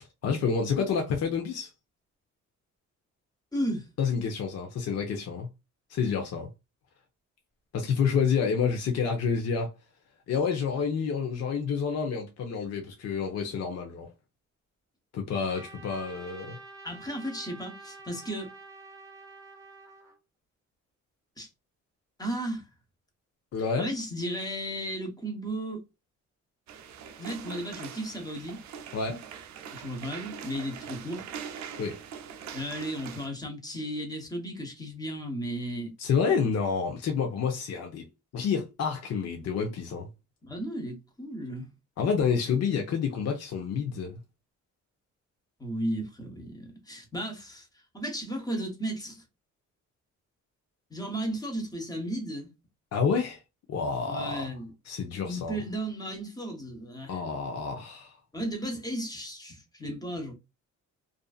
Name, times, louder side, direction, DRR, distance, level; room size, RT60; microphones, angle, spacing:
voice 1, 0.2-1.7 4.0-5.5 5.9-6.5 7.7-9.7 10.3-14.1 15.1-16.6 23.5-23.9 28.9-29.2 31.8-32.0 36.0-38.1 38.3-40.1 42.0-44.2 52.9-53.4 53.7-54.5 54.9-55.6 57.1-58.2, left 6 dB, 55° left, 0.7 m, -29 dB
voice 2, 3.5-3.9 16.8-18.5 21.4-21.5 22.2-22.6 23.8-25.8 27.2-28.6 29.7-31.2 32.5-35.9 40.4-41.7 45.6-47.7 47.9-49.2 50.9-52.5 54.1-54.7 55.2-57.2 58.3-60.3, right 1 dB, 10° left, 1.2 m, -34 dB
Trumpet, 15.5-20.2, right 3 dB, 10° right, 0.9 m, -48 dB
sound 1, 26.7-33.3, right 8 dB, 70° right, 0.5 m, -42 dB
2.6 x 2.4 x 2.4 m
cardioid pair, 90°, 30 cm